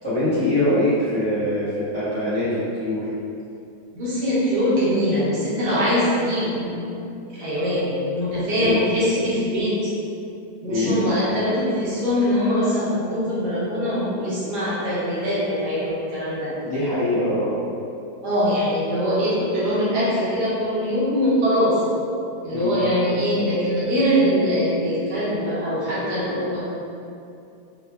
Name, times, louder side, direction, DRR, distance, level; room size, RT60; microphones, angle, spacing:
voice 1, 0.0-3.1 8.6-8.8 10.7-11.0 16.6-17.6 22.5-22.7, left 1 dB, 20° left, -14 dB, 0.8 m, -23 dB
voice 2, 3.9-6.7 7.1-7.9 8.1-9.7 10.6-16.5 18.2-21.8 22.4-26.6, equal, 65° right, -10 dB, 1.4 m, -22 dB
4.5 x 2.3 x 2.3 m, 2.6 s
omnidirectional pair, 1.9 m